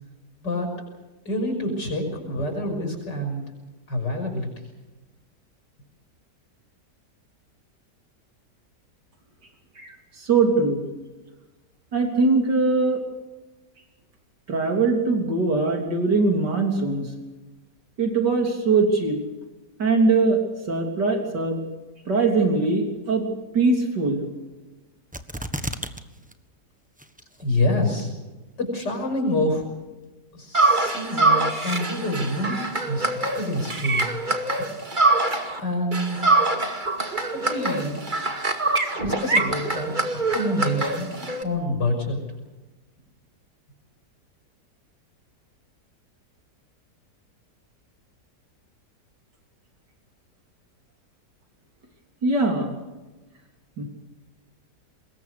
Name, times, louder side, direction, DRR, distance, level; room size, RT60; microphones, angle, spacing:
voice 1, 1.2-3.4 3.9-4.5 27.4-28.1 28.6-29.7 30.3-34.1 34.6-34.7 35.6-36.3 37.3-38.0 39.0-42.2, left 1 dB, 85° left, 3 dB, 6.8 m, -27 dB
voice 2, 9.8-10.9 11.9-13.0 14.5-17.1 18.0-19.2 19.8-20.4 20.7-21.6 22.1-23.2 23.5-24.3 52.2-52.7 53.8-53.9, right 3 dB, 85° right, 3 dB, 4.0 m, -21 dB
sound 1, 25.1-26.0 26.3-26.4 27.0-27.4 28.0-28.1, equal, 5° right, 1.1 m, -31 dB
sound 2, 30.5-35.6 35.9-41.4, right 2 dB, 30° right, 2.3 m, -24 dB
25.0 x 21.5 x 6.7 m, 1.1 s
omnidirectional pair, 1.8 m